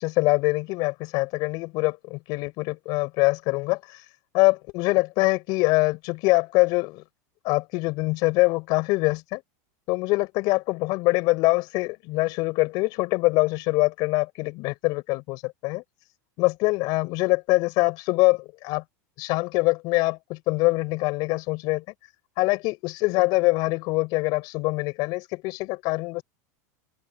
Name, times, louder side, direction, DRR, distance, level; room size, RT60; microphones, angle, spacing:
voice 1, 0.0-4.0 4.3-7.0 7.4-9.4 9.9-15.8 16.4-18.8 19.2-21.8 22.4-26.2, left 24 dB, 45° left, 6.2 m, -24 dB
supercardioid pair, 150°, 9 cm